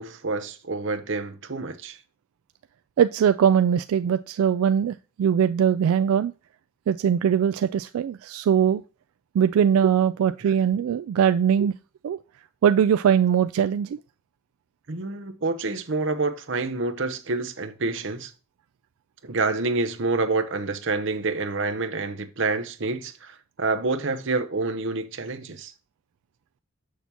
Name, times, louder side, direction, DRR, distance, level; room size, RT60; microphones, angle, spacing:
voice 1, 0.0-2.0 14.9-18.3 19.2-25.7, right 3 dB, 60° right, 0.8 m, -28 dB
voice 2, 3.0-6.3 6.9-8.8 9.3-11.7 12.0-12.2 12.6-14.0, right 8 dB, 90° right, 0.3 m, -21 dB
6.9 x 6.4 x 2.9 m
head